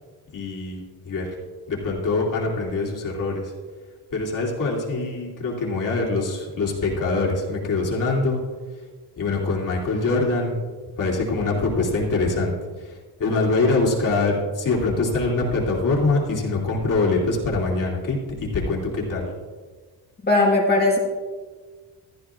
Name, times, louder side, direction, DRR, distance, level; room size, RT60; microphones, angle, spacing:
voice 1, 0.3-1.3 1.7-3.5 4.1-8.4 9.2-10.5 11.0-12.5 12.8-19.2, left 3 dB, 50° left, -4 dB, 3.0 m, -24 dB
voice 2, 20.2-21.0, left 2 dB, 25° left, -3 dB, 1.7 m, -18 dB
15.0 x 14.0 x 2.5 m, 1.5 s
cardioid pair, 170°, 40 cm